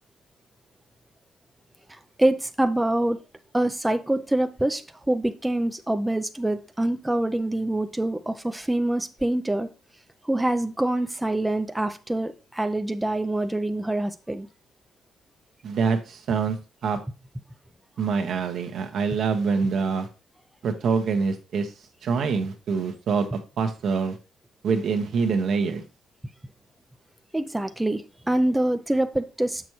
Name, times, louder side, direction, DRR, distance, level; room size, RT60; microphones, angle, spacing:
voice 1, 1.9-3.2 3.5-4.8 5.1-9.7 10.2-14.5 27.3-29.6, right 1 dB, 10° right, 8 dB, 0.5 m, -25 dB
voice 2, 15.6-16.6 16.8-17.0 18.0-20.1 20.6-21.7 22.0-24.2 24.6-25.8, right 5 dB, 65° right, 6 dB, 1.1 m, -25 dB
6.9 x 6.1 x 3.1 m, 0.31 s
cardioid pair, 90°, 0 cm